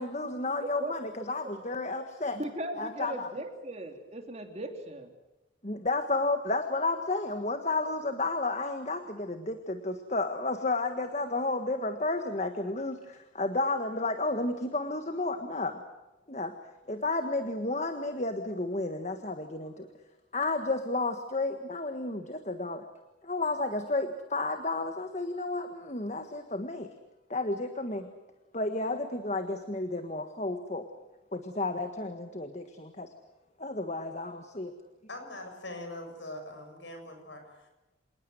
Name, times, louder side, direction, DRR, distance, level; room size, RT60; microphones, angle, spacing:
voice 1, 0.0-2.4 2.8-3.3 5.6-15.8 16.3-16.5 16.9-19.9 20.3-22.8 23.2-26.9 27.3-28.1 28.5-30.9 31.3-33.1 33.6-34.7, left 2 dB, 35° left, 7 dB, 1.6 m, -32 dB
voice 2, 2.3-5.1, right 1 dB, 35° right, 5 dB, 3.1 m, -38 dB
voice 3, 35.1-37.7, left 1 dB, 70° left, 5 dB, 6.8 m, -42 dB
27.5 x 19.5 x 7.9 m, 1.0 s
head